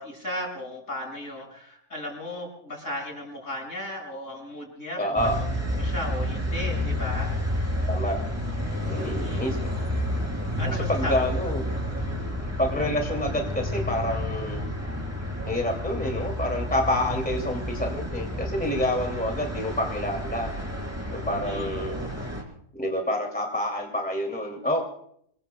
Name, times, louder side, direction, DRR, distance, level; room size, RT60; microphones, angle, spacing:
voice 1, 0.0-5.4 5.8-7.3 9.0-9.5 10.6-11.2 12.0-12.1 21.4-21.8, left 1 dB, 65° left, -1 dB, 6.6 m, -35 dB
voice 2, 5.0-5.4 7.9-8.2 8.8-9.7 10.9-11.6 12.6-14.7 15.5-20.5 21.1-22.1 22.7-24.8, left 1 dB, 5° left, 1 dB, 2.4 m, -28 dB
sound 1, 5.2-22.4, equal, 10° right, 3.4 m, -30 dB
28.5 x 21.5 x 2.2 m, 0.69 s
omnidirectional pair, 1.4 m